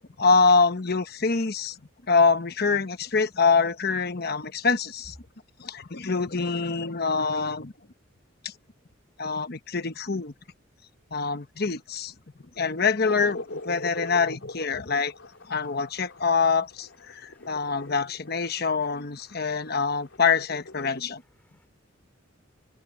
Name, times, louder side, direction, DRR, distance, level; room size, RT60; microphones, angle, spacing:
voice 1, 0.2-1.8 2.1-5.1 5.6-7.7 8.4-8.5 9.2-10.3 11.1-12.1 12.6-15.1 15.5-21.2, left 4 dB, 55° left, 1.1 m, -25 dB
sound 1, 13.0-21.0, left 2 dB, 80° left, 3.4 m, -42 dB
voice 2, 17.1-17.7 19.3-19.6 21.4-21.7, left 1 dB, 10° left, 5.0 m, -66 dB
head